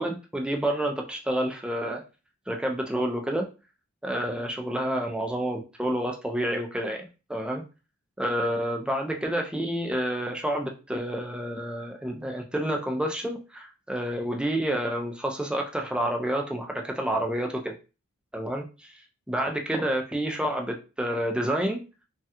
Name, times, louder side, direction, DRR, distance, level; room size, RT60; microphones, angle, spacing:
voice 1, 0.0-2.0 2.5-3.5 4.0-7.6 8.2-17.8 18.3-19.0 19.3-21.8, right 1 dB, 5° right, 2 dB, 0.4 m, -29 dB
3.2 x 2.8 x 2.3 m, 0.32 s
head